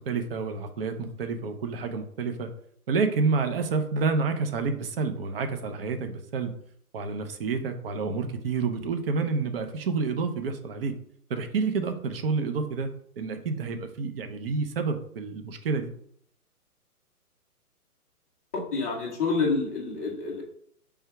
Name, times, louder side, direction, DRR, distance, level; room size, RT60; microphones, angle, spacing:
voice 1, 0.1-2.5 2.9-6.5 6.9-10.9 11.3-12.9 13.2-15.9, right 4 dB, 40° right, 7 dB, 0.6 m, -29 dB
voice 2, 18.5-20.4, left 4 dB, 10° left, -5 dB, 0.5 m, -28 dB
3.4 x 2.7 x 4.6 m, 0.66 s
figure-of-eight pair, 130°, 46 cm